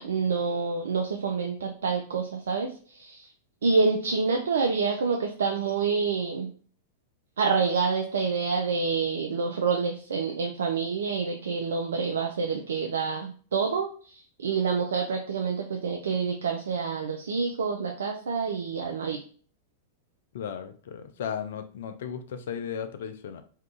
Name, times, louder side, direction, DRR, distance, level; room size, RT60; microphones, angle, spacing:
voice 1, 0.0-3.3 3.6-6.5 7.4-19.2, right 5 dB, 75° right, 2 dB, 0.4 m, -27 dB
voice 2, 20.3-23.4, left 8 dB, 70° left, 9 dB, 0.5 m, -35 dB
2.7 x 2.4 x 3.5 m, 0.43 s
hypercardioid pair, 100°, 0 cm